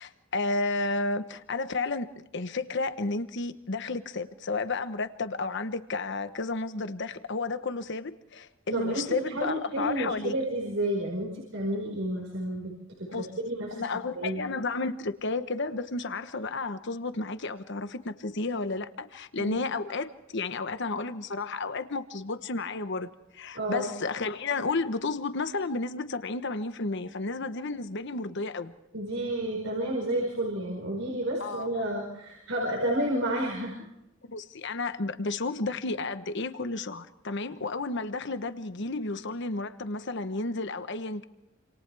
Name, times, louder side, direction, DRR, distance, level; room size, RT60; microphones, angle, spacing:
voice 1, 0.0-2.1 2.3-10.3 13.1-13.3 13.7-28.7 31.4-31.7 34.3-41.2, left 3 dB, 60° left, 1.1 m, -32 dB
voice 2, 8.7-12.7 13.0-13.8 14.1-14.4 19.4-19.6 23.6-23.9 28.9-33.8, right 1 dB, 80° right, 5.1 m, -31 dB
28.0 x 27.5 x 3.5 m
head